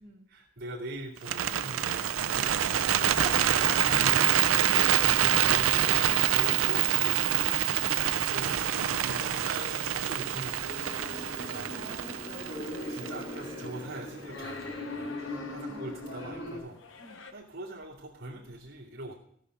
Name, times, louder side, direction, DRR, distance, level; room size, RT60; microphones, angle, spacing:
voice 1, 0.3-2.6 3.7-4.3 4.8-7.5 8.3-10.8 11.3-11.7 12.7-17.0 17.3-19.1, right 2 dB, 50° right, -8 dB, 2.6 m, -42 dB
Bird, 1.2-13.4, right 11 dB, 85° right, 0.5 m, -26 dB
sound 1, 1.9-17.3, left 4 dB, 65° left, 1.0 m, -48 dB
voice 2, 3.0-5.2 7.7-8.1 11.1-12.8 15.0-15.2 15.6-15.9 17.0-17.2, right 2 dB, 30° right, -3 dB, 1.3 m, -44 dB
sound 2, 9.7-16.6, left 1 dB, 85° left, 4.0 m, -40 dB
16.5 x 6.2 x 6.5 m, 0.68 s
head